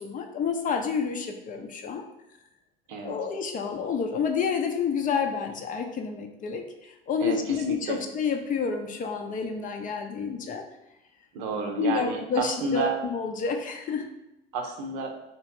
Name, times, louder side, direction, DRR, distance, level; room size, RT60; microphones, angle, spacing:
voice 1, 0.0-2.0 3.0-10.6 11.8-14.1, left 5 dB, 25° left, 5 dB, 0.5 m, -29 dB
voice 2, 7.2-8.0 11.3-13.0 14.5-15.1, right 3 dB, 60° right, 4 dB, 0.7 m, -31 dB
3.2 x 3.0 x 4.3 m, 0.89 s
figure-of-eight pair, 65°, 30 cm